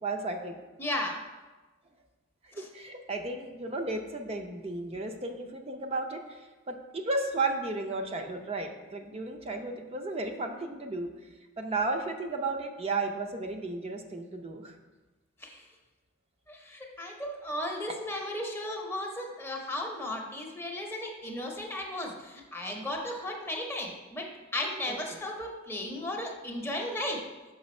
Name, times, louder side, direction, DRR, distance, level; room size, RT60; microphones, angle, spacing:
voice 1, 0.0-0.6 2.4-6.4 6.7-11.1 11.6-14.7 24.9-25.2, right 3 dB, 30° right, 4 dB, 0.6 m, -34 dB
voice 2, 0.8-1.2 2.5-2.7 15.4-15.7 16.5-27.2, left 1 dB, 10° left, 1 dB, 0.7 m, -35 dB
6.1 x 5.5 x 4.2 m, 1.2 s
head